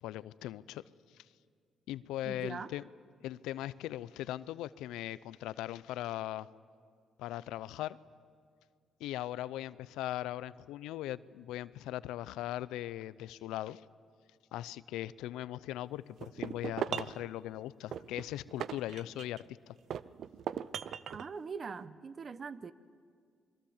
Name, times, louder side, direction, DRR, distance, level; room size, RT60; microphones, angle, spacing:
voice 1, 0.0-0.8 1.1-1.2 1.9-2.8 3.2-6.5 7.2-8.0 9.0-13.8 14.5-19.7, left 14 dB, 90° left, 18 dB, 0.5 m, -39 dB
voice 2, 2.2-2.7 21.1-22.7, right 5 dB, 45° right, 16 dB, 0.9 m, -42 dB
sound 1, 16.2-17.2 17.9-19.5 19.9-21.3, right 9 dB, 70° right, 0.6 m, -38 dB
27.0 x 21.5 x 7.3 m, 2.1 s
cardioid pair, 75°, 0 cm